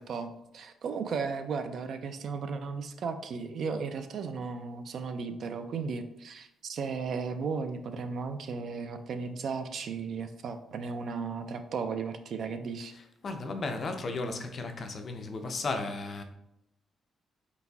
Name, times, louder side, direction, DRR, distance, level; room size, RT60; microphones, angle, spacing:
voice 1, 0.0-12.9, right 5 dB, 55° right, 8 dB, 0.3 m, -35 dB
voice 2, 13.2-16.2, left 3 dB, 35° left, 5 dB, 0.4 m, -34 dB
4.3 x 3.9 x 2.3 m, 0.80 s
cardioid pair, 160°, 0 cm